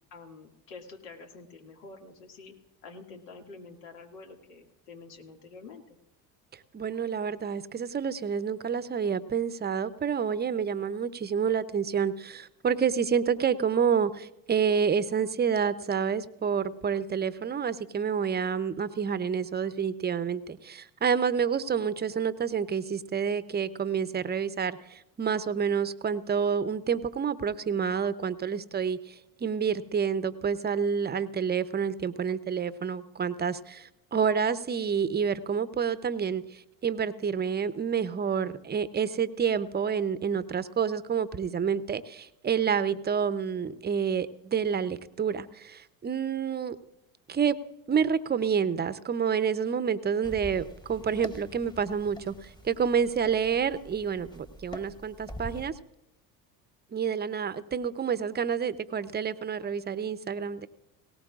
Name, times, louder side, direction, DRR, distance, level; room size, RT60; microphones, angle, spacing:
voice 1, 0.1-5.8, left 4 dB, 80° left, 2 dB, 2.3 m, -48 dB
voice 2, 6.5-46.8 47.3-47.6 47.9-55.7 56.9-60.7, right 7 dB, 20° right, 14 dB, 0.7 m, -28 dB
sound 1, 50.2-55.7, equal, 10° left, 1.2 m, -45 dB
19.0 x 17.5 x 2.5 m, 0.92 s
hypercardioid pair, 75°, 48 cm